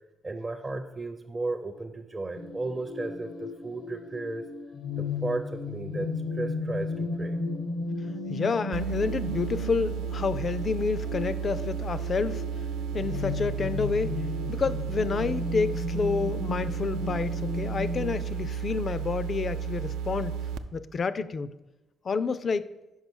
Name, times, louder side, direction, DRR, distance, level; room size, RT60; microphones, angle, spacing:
voice 1, 0.2-4.5 5.0-7.4, right 2 dB, 30° right, 6 dB, 0.5 m, -34 dB
sound 1, 2.3-18.1, left 3 dB, 75° left, 0.7 m, -35 dB
voice 2, 8.3-12.4 12.9-14.1 14.5-21.5 22.0-22.7, left 5 dB, 45° left, 15 dB, 0.3 m, -29 dB
sound 2, 8.7-20.6, right 8 dB, 85° right, 0.3 m, -33 dB
5.5 x 4.9 x 6.2 m, 1.0 s
cardioid pair, 90°, 0 cm